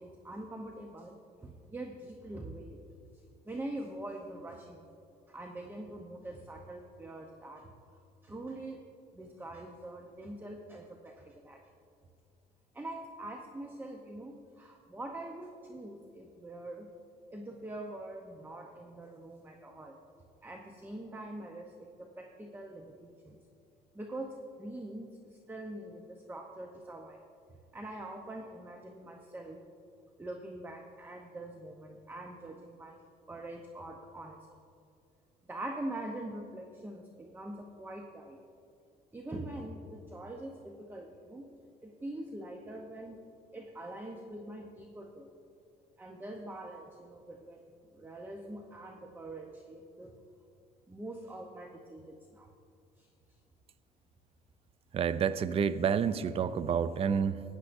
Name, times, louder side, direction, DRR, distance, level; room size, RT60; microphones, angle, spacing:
voice 1, 0.0-2.8 3.5-4.9 5.3-7.7 8.2-8.8 9.1-11.6 12.7-16.9 17.3-20.0 20.4-23.4 23.9-27.2 27.7-29.6 30.2-33.0 33.3-34.4 35.5-38.4 39.1-41.5 41.8-43.2 43.5-45.3 46.0-50.1 50.9-52.5 53.0-53.1, right 1 dB, 10° right, 2 dB, 0.7 m, -44 dB
voice 2, 54.9-57.4, right 7 dB, 35° right, 14 dB, 0.4 m, -29 dB
16.0 x 9.8 x 2.6 m, 2.4 s
cardioid pair, 110°, 17 cm